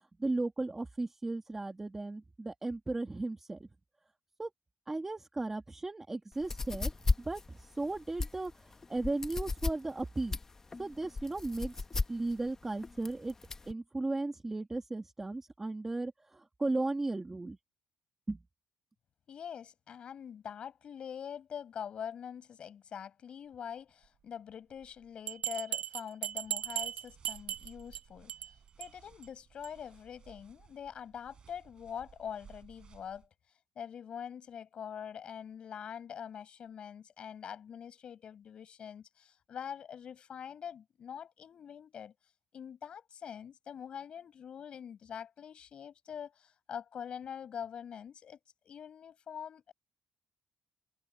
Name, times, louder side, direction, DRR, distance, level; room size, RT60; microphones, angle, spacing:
voice 1, 0.2-3.7 4.4-4.5 4.9-6.9 7.2-10.4 10.8-11.8 12.1-13.3 13.7-17.6 18.3-18.4, right 2 dB, 15° right, 1.7 m, -36 dB
sound 1, 6.3-13.7, left 3 dB, 20° left, 1.2 m, -35 dB
voice 2, 19.3-33.3 33.8-42.1 42.5-48.4 48.6-49.7, left 8 dB, 45° left, 7.4 m, -44 dB
Bell, 25.3-28.0 28.3-28.5 28.8-28.9 29.2-29.3 29.6-29.7, right 12 dB, 70° right, 0.8 m, -37 dB
sound 2, 26.3-33.3, right 7 dB, 40° right, 5.8 m, -59 dB
cardioid pair, 155°, 2 cm